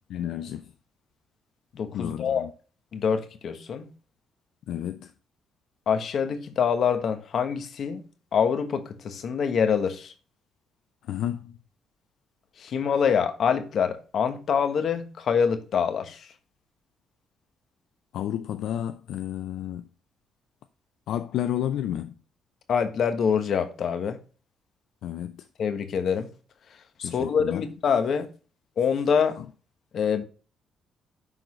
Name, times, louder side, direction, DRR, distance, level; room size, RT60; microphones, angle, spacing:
voice 1, 0.1-0.6 1.9-2.5 4.7-5.1 11.1-11.5 18.1-19.8 21.1-22.1 25.0-25.4 27.0-27.6, left 11 dB, 80° left, 0.4 m, -31 dB
voice 2, 1.7-2.5 2.9-3.9 5.9-8.0 8.3-10.1 12.6-16.3 22.7-24.2 25.6-26.3 27.0-28.3 28.8-29.4 29.9-30.2, left 7 dB, 60° left, 1.2 m, -25 dB
11.0 x 3.9 x 3.1 m
cardioid pair, 90°, 0 cm